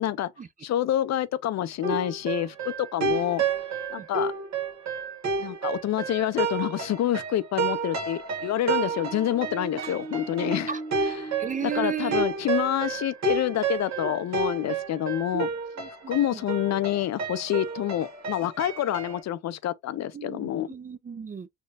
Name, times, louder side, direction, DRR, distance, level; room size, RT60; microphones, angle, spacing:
voice 1, 0.6-3.4 3.9-4.3 5.4-10.7 11.2-11.3 11.6-15.5 16.1-20.7, left 12 dB, 60° left, 0.5 m, -27 dB
sound 1, 1.8-19.2, right 5 dB, 60° right, 1.4 m, -31 dB
voice 2, 11.4-12.3 14.0-14.1 15.3-15.4 15.8-16.4 20.1-21.5, right 7 dB, 25° right, 0.5 m, -34 dB
4.3 x 2.3 x 3.3 m
cardioid pair, 90°, 30 cm